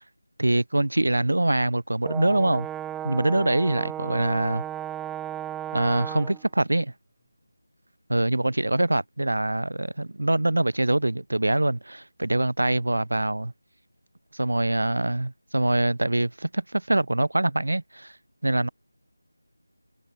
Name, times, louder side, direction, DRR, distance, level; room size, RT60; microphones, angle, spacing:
voice 1, 0.4-2.7 3.0-4.6 5.7-6.9 8.1-13.5 14.3-18.1 18.4-18.7, right 1 dB, 70° right, 6.5 m, -24 dB
Brass instrument, 2.0-6.4, right 11 dB, 5° right, 2.9 m, -34 dB
figure-of-eight pair, 165°, 0 cm